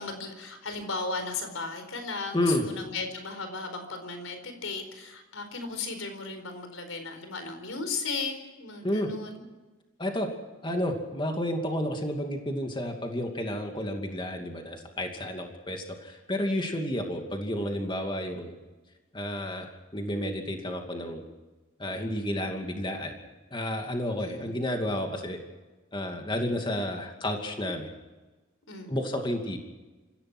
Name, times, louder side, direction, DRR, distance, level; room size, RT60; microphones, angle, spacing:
voice 1, 0.0-9.4 24.2-24.6 28.7-29.0, left 4 dB, 75° left, 7 dB, 4.5 m, -36 dB
voice 2, 2.3-2.7 8.8-9.1 10.0-10.3 10.6-18.6 19.1-21.2 21.8-23.1 23.5-25.4 25.9-27.9 28.9-29.6, left 1 dB, 20° left, 3 dB, 2.5 m, -31 dB
27.5 x 16.0 x 6.2 m, 1.2 s
head